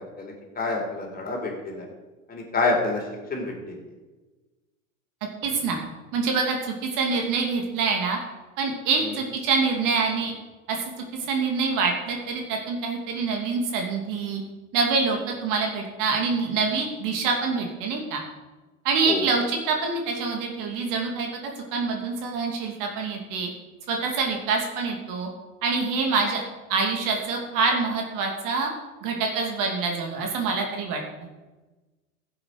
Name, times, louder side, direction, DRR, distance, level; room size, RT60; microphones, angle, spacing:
voice 1, 0.2-1.9 2.3-3.0 3.3-3.8 19.1-19.2, left 3 dB, 20° left, 0 dB, 4.0 m, -27 dB
voice 2, 5.4-5.8 6.1-8.2 8.6-10.3 10.7-14.4 14.7-18.2 18.8-23.5 23.9-25.3 25.6-26.4 26.7-28.7 29.0-31.0, right 4 dB, 50° right, 2 dB, 2.7 m, -26 dB
15.5 x 7.8 x 4.9 m, 1.2 s
hypercardioid pair, 85°, 40 cm